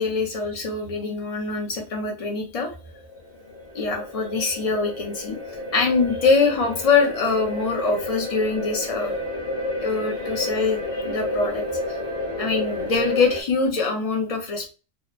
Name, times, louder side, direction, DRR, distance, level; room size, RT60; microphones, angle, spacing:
voice 1, 0.0-2.7 3.7-5.4 5.7-9.1 9.8-12.0 12.4-14.7, left 4 dB, 45° left, 2 dB, 0.4 m, -24 dB
sound 1, 2.7-13.4, left 1 dB, 25° left, 0.9 m, -31 dB
2.9 x 2.1 x 2.4 m, 0.33 s
omnidirectional pair, 1.4 m